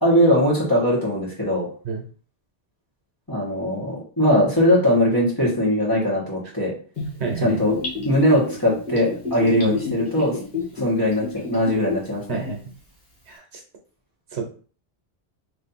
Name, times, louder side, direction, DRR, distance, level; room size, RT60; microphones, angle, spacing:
voice 1, 0.0-1.7 3.3-6.7 7.4-7.7 8.0-10.4 10.7-12.4, equal, 20° left, -5 dB, 1.5 m, -20 dB
Gurgling / Bathtub (filling or washing), 7.0-12.1 12.4-12.5, left 4 dB, 50° left, 1.5 m, -29 dB
voice 2, 7.2-7.6 9.6-9.7 12.3-12.7 13.3-13.6 14.3-14.4, right 4 dB, 75° right, 2 dB, 1.1 m, -29 dB
3.2 x 2.8 x 4.1 m, 0.41 s
omnidirectional pair, 1.1 m